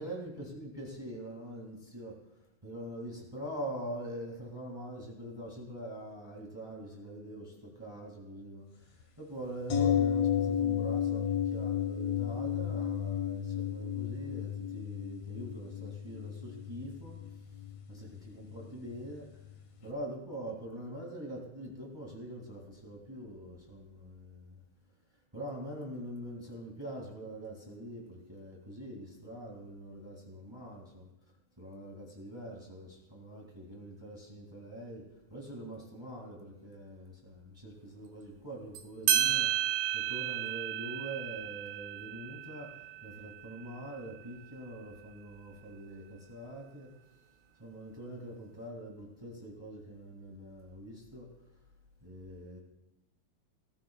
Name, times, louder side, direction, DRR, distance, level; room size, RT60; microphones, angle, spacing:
voice 1, 0.0-17.6 17.9-19.4 19.8-24.6 25.1-31.1 31.6-46.9 47.6-51.3 52.0-52.6, right 1 dB, 25° right, -1 dB, 0.5 m, -44 dB
sound 1, 9.7-19.6 19.9-20.0, left 8 dB, 90° left, 1.5 m, -33 dB
sound 2, 38.7-38.8 39.1-44.2, right 11 dB, 80° right, 3.1 m, -33 dB
21.0 x 15.0 x 2.4 m, 0.91 s
omnidirectional pair, 5.1 m